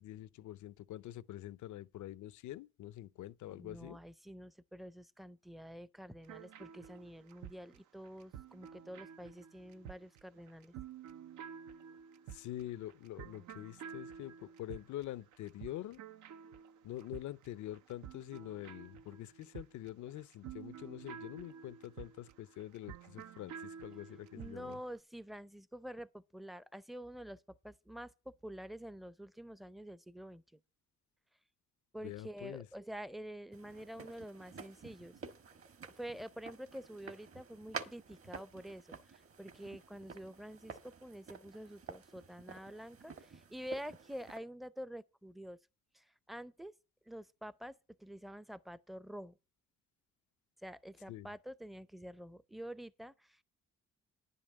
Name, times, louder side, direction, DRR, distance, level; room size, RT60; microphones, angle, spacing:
voice 1, 0.0-4.0 12.3-16.0 16.8-24.8 32.0-32.7 51.1-51.3, left 13 dB, 75° left, 0.6 m, -45 dB
voice 2, 3.5-10.7 24.3-30.6 31.9-35.1 36.0-45.6 45.9-46.7 47.1-49.4 50.6-53.4, equal, ahead, 0.5 m, -48 dB
sound 1, 6.2-24.8, right 8 dB, 75° right, 0.7 m, -51 dB
sound 2, 33.5-44.4, right 5 dB, 45° right, 1.3 m, -50 dB
10.0 x 5.5 x 7.4 m
cardioid pair, 90°, 30 cm